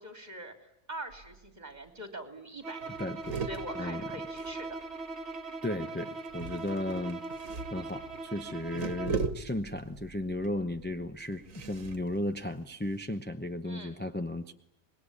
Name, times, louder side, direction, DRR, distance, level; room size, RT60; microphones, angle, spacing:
voice 1, 0.0-3.0 3.4-4.8 13.6-14.0, right 1 dB, 30° right, 6 dB, 3.2 m, -43 dB
sound 1, 1.1-1.6 1.9-2.0 2.2-2.5 2.8-5.1 6.2-13.2, right 5 dB, 80° right, 1.7 m, -40 dB
Bowed string instrument, 2.6-9.3, right 3 dB, 55° right, 1.8 m, -40 dB
voice 2, 3.0-3.4 3.7-4.0 5.6-7.2 7.7-14.5, left 1 dB, 10° left, 6 dB, 0.7 m, -35 dB
26.0 x 21.0 x 9.8 m, 0.84 s
omnidirectional pair, 1.4 m